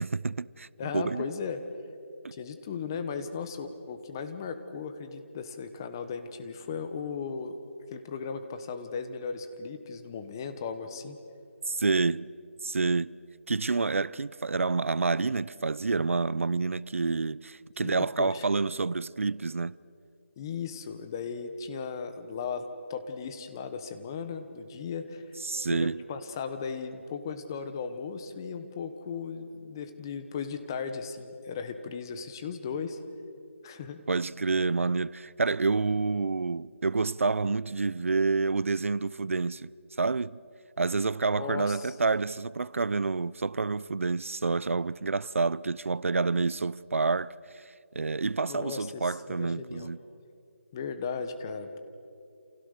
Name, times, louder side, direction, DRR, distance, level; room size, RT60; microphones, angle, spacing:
voice 1, 0.0-0.7 0.9-1.2 11.7-12.3 12.6-13.2 13.5-19.8 25.4-26.0 34.1-39.7 40.0-40.4 40.8-47.6 47.9-50.0, right 4 dB, 75° right, 0.6 m, -28 dB
voice 2, 0.8-1.6 2.3-7.5 7.9-11.2 17.8-18.4 20.4-25.2 25.7-33.0 33.6-34.0 41.3-41.9 48.5-49.9 50.7-51.8, left 5 dB, 15° left, 1.1 m, -36 dB
29.0 x 28.5 x 6.6 m
figure-of-eight pair, 175°, 7 cm